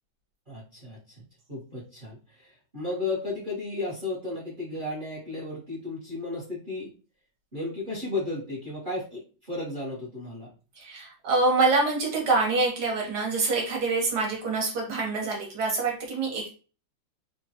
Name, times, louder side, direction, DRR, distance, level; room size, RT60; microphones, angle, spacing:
voice 1, 0.5-1.2 1.5-6.9 7.5-10.5, left 2 dB, 40° right, -6 dB, 0.8 m, -34 dB
voice 2, 10.8-16.5, right 3 dB, 60° right, 0 dB, 1.3 m, -25 dB
3.5 x 2.2 x 2.7 m, 0.36 s
omnidirectional pair, 2.2 m